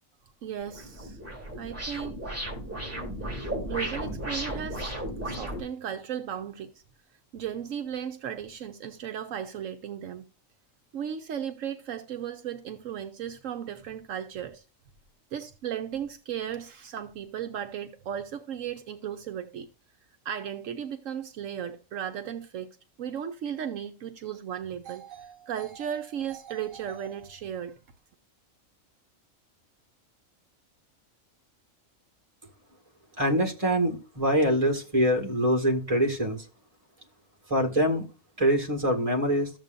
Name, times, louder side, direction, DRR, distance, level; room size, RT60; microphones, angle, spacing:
voice 1, 0.4-1.2 1.6-2.2 3.3-5.0 5.2-6.7 7.3-10.3 10.9-14.6 15.3-19.7 20.2-27.8, right 9 dB, 75° right, 1.1 m, -36 dB
sound 1, 0.6-5.6, right 1 dB, 10° right, 2.7 m, -35 dB
voice 2, 33.2-36.4 37.5-38.1 38.4-39.5, equal, 25° right, 2.0 m, -24 dB
13.5 x 7.4 x 2.6 m
omnidirectional pair, 1.4 m